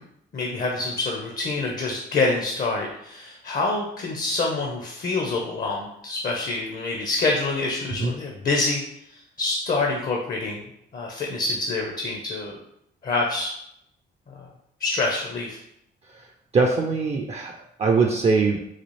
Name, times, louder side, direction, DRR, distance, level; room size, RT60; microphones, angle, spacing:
voice 1, 0.3-10.7 10.9-12.6 13.0-13.5 14.3-14.5 14.8-15.6, left 3 dB, 45° left, 0 dB, 0.7 m, -26 dB
voice 2, 16.5-18.6, right 4 dB, 35° right, 2 dB, 0.4 m, -22 dB
4.0 x 2.3 x 3.1 m, 0.76 s
cardioid pair, 90°, 20 cm